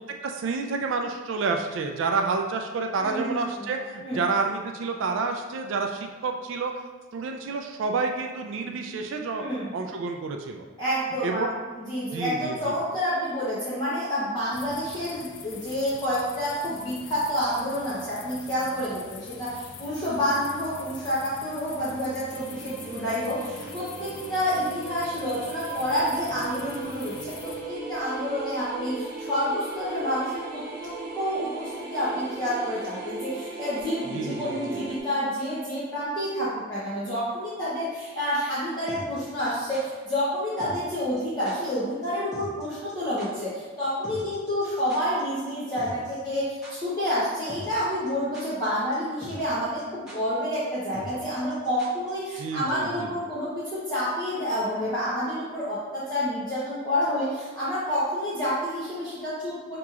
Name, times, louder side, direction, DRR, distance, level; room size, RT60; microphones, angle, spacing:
voice 1, 0.2-6.7 7.1-9.4 9.7-10.6 11.2-11.5 12.1-12.7 34.1-34.8 52.4-53.1, right 4 dB, 70° right, 3 dB, 0.3 m, -29 dB
voice 2, 3.0-3.7 4.0-4.2 9.3-9.7 10.8-59.8, equal, 20° left, -11 dB, 0.7 m, -29 dB
sound 1, 14.5-27.6, left 5 dB, 60° left, 0.3 m, -44 dB
sound 2, 22.3-35.0, right 3 dB, 45° right, 0.7 m, -37 dB
sound 3, 38.9-39.8 40.6-40.9 41.2-41.3 41.5-41.8 42.0-42.1 42.3-42.6 42.9-43.0 43.2-43.3 44.0-45.2 45.5-45.6 45.8-46.4 46.6-46.7 47.5-47.8 48.1-48.7 48.9-49.0 49.2-49.5 49.8-49.9 50.1-50.2 50.9-52.1 52.4-52.5, equal, 5° right, 1.0 m, -42 dB
6.0 x 2.9 x 2.4 m, 1.4 s
head